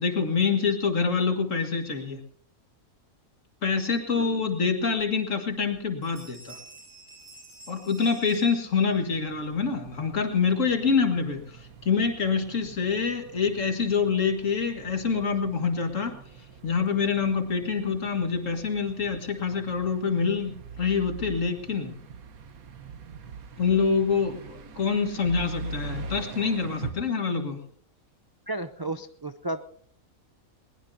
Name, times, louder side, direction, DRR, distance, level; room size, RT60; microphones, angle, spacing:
voice 1, 0.0-2.2 3.6-6.6 7.7-16.1 16.6-22.0 23.6-27.6, left 5 dB, 60° left, 5 dB, 2.2 m, -26 dB
sound 1, 5.0-5.1 5.5-5.8 6.0-9.2, right 2 dB, 65° right, 8.0 m, -50 dB
sound 2, 8.7-26.9, right 4 dB, 80° right, 1.6 m, -43 dB
voice 2, 28.5-29.6, right 2 dB, 35° right, 9 dB, 0.3 m, -33 dB
20.5 x 20.5 x 2.8 m, 0.62 s
omnidirectional pair, 1.5 m